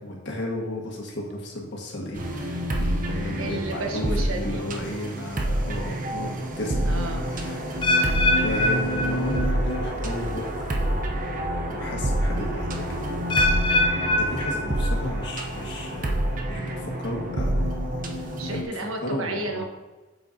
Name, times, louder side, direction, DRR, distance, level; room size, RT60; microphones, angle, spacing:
voice 1, 0.0-6.9 7.3-7.6 8.4-10.7 11.7-13.1 13.5-13.8 14.2-17.7 18.1-18.7 19.0-19.6, left 1 dB, 55° left, -1 dB, 1.6 m, -34 dB
sound 1, 2.1-18.6, right 1 dB, 40° right, 0.7 m, -27 dB
voice 2, 3.4-4.6 6.8-7.3 7.9-8.2 18.3-19.6, right 2 dB, 85° right, 2 dB, 1.2 m, -32 dB
sound 2, 7.8-9.8 10.1-10.5 11.2-11.3 13.3-15.3 15.6-16.0 16.7-16.8, left 1 dB, 25° left, 0.5 m, -24 dB
8.6 x 6.8 x 2.7 m, 1.2 s
head